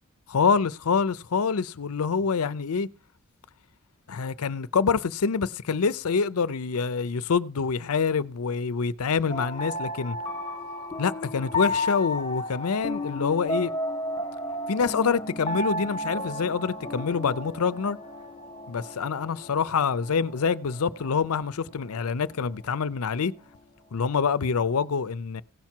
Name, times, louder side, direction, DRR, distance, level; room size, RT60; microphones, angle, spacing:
voice 1, 0.3-2.9 4.1-10.2 11.0-13.7 14.7-18.0 18.7-23.3 23.9-25.4, left 5 dB, 85° left, 0.6 m, -26 dB
sound 1, 9.3-23.5, left 1 dB, 20° left, 1.4 m, -33 dB
16.5 x 5.9 x 4.5 m
head